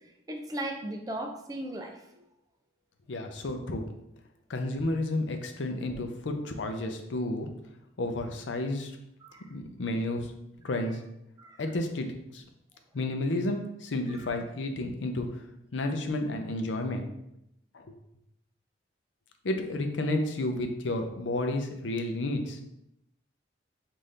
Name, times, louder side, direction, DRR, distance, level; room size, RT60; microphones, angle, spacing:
voice 1, 0.3-2.0 9.2-9.5 11.4-11.6 14.1-14.2, right 1 dB, 20° right, 3 dB, 0.4 m, -37 dB
voice 2, 3.1-3.9 4.5-7.5 8.0-8.9 9.5-10.3 10.6-11.0 11.6-12.1 12.3-12.4 12.9-15.3 15.7-17.1 17.7-17.9 19.4-22.6, left 2 dB, 80° left, 5 dB, 0.6 m, -31 dB
5.5 x 2.6 x 3.2 m, 0.82 s
head